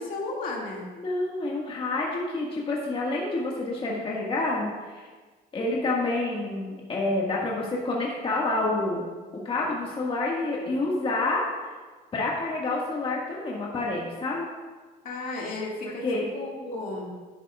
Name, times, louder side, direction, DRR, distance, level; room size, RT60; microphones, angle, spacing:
voice 1, 0.0-0.9 15.0-16.0 16.3-17.1, left 2 dB, 55° left, -2 dB, 2.1 m, -33 dB
voice 2, 1.0-5.1 5.5-11.6 12.1-14.5 16.0-16.3, left 2 dB, 30° left, -4 dB, 1.7 m, -28 dB
11.5 x 9.9 x 2.4 m, 1.4 s
cardioid pair, 110°, 17 cm